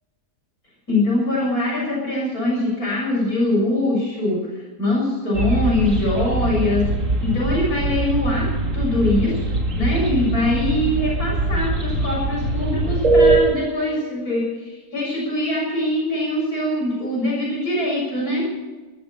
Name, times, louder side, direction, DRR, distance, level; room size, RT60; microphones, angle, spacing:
voice 1, 0.9-6.9 7.2-18.5, left 1 dB, 75° left, -4 dB, 7.2 m, -23 dB
sound 1, 5.3-13.4, right 2 dB, 55° right, 2.5 m, -22 dB
20.5 x 13.5 x 4.3 m, 1.3 s
omnidirectional pair, 1.6 m